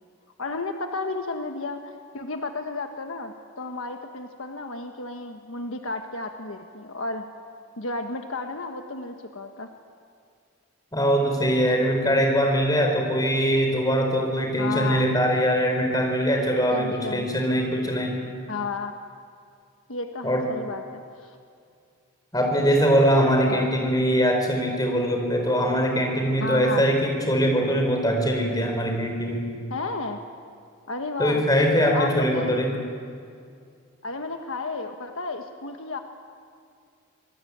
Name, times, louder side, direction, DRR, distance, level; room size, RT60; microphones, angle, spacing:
voice 1, 0.4-7.3 7.8-9.7 14.6-15.1 16.7-17.3 18.5-19.0 19.9-21.4 23.1-23.7 26.4-26.8 29.7-30.2 30.9-31.4 31.8-32.6 34.0-36.0, left 3 dB, 70° left, 5 dB, 1.4 m, -33 dB
voice 2, 10.9-18.2 20.2-20.5 22.3-29.5 31.2-32.7, equal, 15° left, 2 dB, 4.5 m, -22 dB
26.0 x 19.5 x 8.7 m, 2.3 s
head